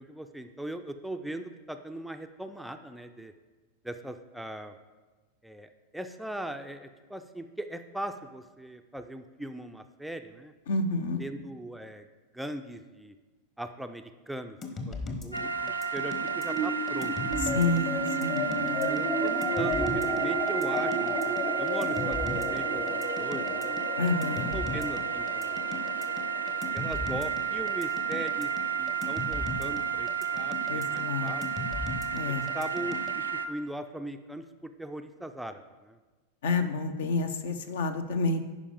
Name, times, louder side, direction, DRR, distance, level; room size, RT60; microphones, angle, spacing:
voice 1, 0.0-3.3 3.8-4.8 5.4-10.5 11.2-12.1 12.3-13.2 13.6-14.6 14.9-17.6 18.6-23.7 24.5-25.6 26.7-28.5 28.8-31.7 32.3-36.0, right 1 dB, ahead, 7 dB, 0.4 m, -40 dB
voice 2, 10.7-11.2 17.4-18.9 24.0-24.6 30.7-31.3 32.1-32.5 36.4-38.4, left 3 dB, 60° left, 9 dB, 0.7 m, -29 dB
sound 1, 14.6-33.1, left 3 dB, 25° left, 1.0 m, -38 dB
sound 2, 15.3-33.5, right 7 dB, 85° right, 0.5 m, -32 dB
sound 3, 16.5-29.1, equal, 45° left, 1.4 m, -34 dB
9.8 x 5.2 x 5.0 m, 1.3 s
figure-of-eight pair, 90°, 0 cm